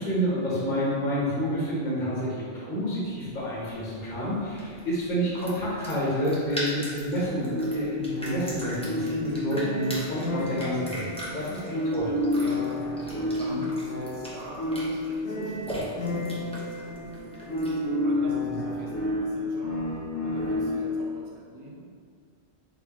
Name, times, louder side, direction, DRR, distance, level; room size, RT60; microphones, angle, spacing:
voice 1, 0.0-12.2 13.4-13.6 18.4-18.6, equal, 45° left, -8 dB, 1.2 m, -29 dB
sound 1, 3.1-17.9, equal, 5° left, 0.7 m, -41 dB
voice 2, 3.8-4.1 11.5-11.6 12.3-17.4 18.0-21.9, right 2 dB, 70° right, -4 dB, 0.8 m, -44 dB
sound 2, 7.4-21.0, left 1 dB, 85° left, 1.0 m, -30 dB
4.3 x 3.7 x 2.9 m, 2.1 s
omnidirectional pair, 1.1 m